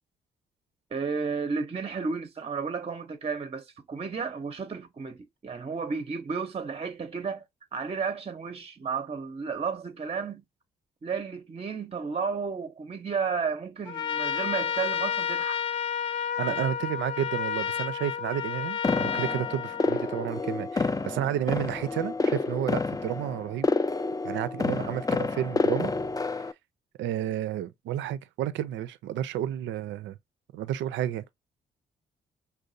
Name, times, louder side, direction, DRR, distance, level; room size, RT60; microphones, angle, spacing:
voice 1, 0.9-7.4 7.7-10.4 11.0-15.6 16.5-16.6, right 5 dB, 30° right, 0.6 m, -32 dB
Trumpet, 13.8-20.4, left 8 dB, 75° left, 0.5 m, -31 dB
voice 2, 16.4-23.7 24.2-25.9 27.0-30.2 30.5-31.3, right 11 dB, 75° right, 0.4 m, -31 dB
sound 1, 18.8-26.5, left 3 dB, 20° left, 0.4 m, -29 dB
5.3 x 2.2 x 2.5 m
hypercardioid pair, 45°, 20 cm